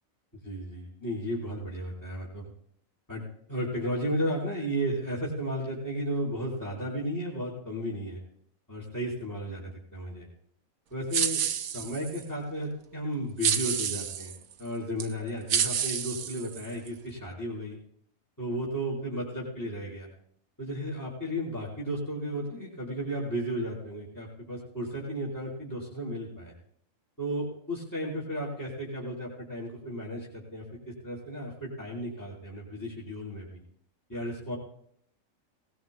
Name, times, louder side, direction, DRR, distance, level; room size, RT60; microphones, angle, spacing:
voice 1, 0.4-2.5 3.1-3.2 3.5-8.2 8.7-10.3 10.9-11.4 11.7-14.3 14.6-17.8 18.4-20.1 20.6-26.5 27.2-33.6 34.1-34.6, equal, 15° left, -6 dB, 4.1 m, -34 dB
sound 1, 11.1-12.2 13.4-14.4 15.0-15.1 15.5-16.9, right 8 dB, 85° right, 1.3 m, -29 dB
19.5 x 19.0 x 2.3 m, 0.66 s
omnidirectional pair, 1.4 m